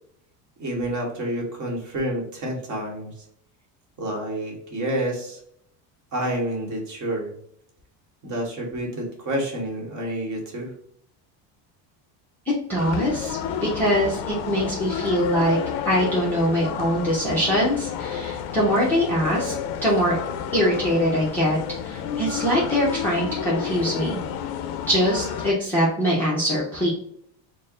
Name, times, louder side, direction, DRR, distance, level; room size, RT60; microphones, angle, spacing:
voice 1, 0.6-3.1 4.0-5.4 6.1-7.3 8.2-10.7, right 1 dB, 40° right, 0 dB, 1.2 m, -29 dB
voice 2, 12.5-15.6 15.8-19.6 19.8-20.2 20.5-21.6 21.8-24.2 24.9-26.9, equal, 5° left, -8 dB, 0.5 m, -23 dB
sound 1, 12.8-25.5, left 8 dB, 60° left, 0.5 m, -31 dB
4.4 x 2.1 x 3.5 m, 0.68 s
cardioid pair, 175°, 45 cm